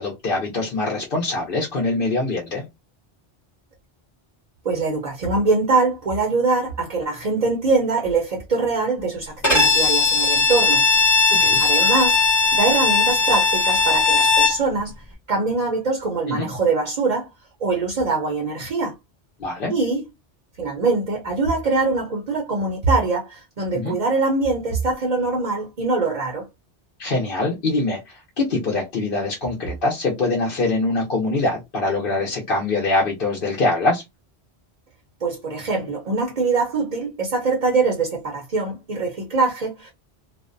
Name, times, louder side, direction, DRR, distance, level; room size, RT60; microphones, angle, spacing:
voice 1, 0.0-2.6 11.4-11.6 16.3-16.5 19.4-19.7 23.7-23.9 27.0-34.0, left 2 dB, 60° left, 0.8 m, -23 dB
voice 2, 4.6-10.9 11.6-12.2 12.5-14.9 15.3-17.3 17.6-18.9 19.7-20.0 20.6-26.5 35.2-39.9, right 3 dB, 45° right, 0.7 m, -23 dB
Bowed string instrument, 9.4-14.6, left 4 dB, 20° left, 1.0 m, -18 dB
2.5 x 2.1 x 2.5 m
omnidirectional pair, 1.1 m